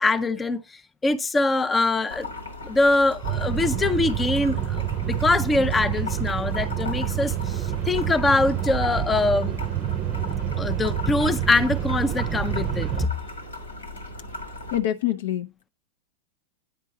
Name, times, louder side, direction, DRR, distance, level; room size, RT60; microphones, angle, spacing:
voice 1, 0.0-2.3 2.6-9.6 10.6-13.1, left 3 dB, 15° left, 0.5 m, -23 dB
sound 1, 2.1-14.8, left 2 dB, 75° left, 1.7 m, -38 dB
sound 2, 3.2-13.1, right 11 dB, 30° right, 0.6 m, -27 dB
voice 2, 14.7-15.7, left 12 dB, 55° left, 0.6 m, -26 dB
9.8 x 4.6 x 3.8 m
figure-of-eight pair, 90°, 0 cm